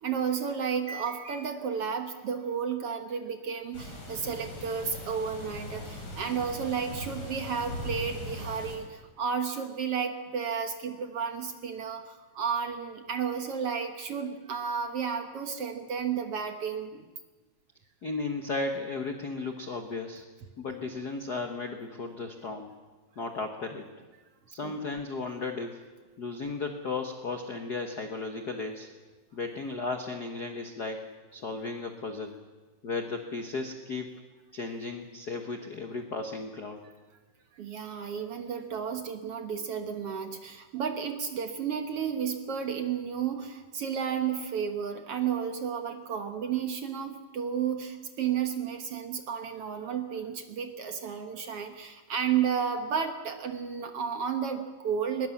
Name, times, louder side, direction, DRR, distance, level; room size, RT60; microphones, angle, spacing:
voice 1, 0.0-17.1 24.6-24.8 37.5-55.3, right 7 dB, 55° right, 6 dB, 1.8 m, -32 dB
sound 1, 3.7-8.8, left 1 dB, 35° left, 4.6 m, -40 dB
voice 2, 18.0-20.2 20.6-22.7 23.2-23.9 24.5-25.8 26.2-28.9 29.3-31.0 31.3-32.3 32.8-34.1 34.5-36.8 39.5-39.7, left 3 dB, 55° left, 5 dB, 1.0 m, -35 dB
21.0 x 21.0 x 7.2 m, 1.3 s
omnidirectional pair, 3.7 m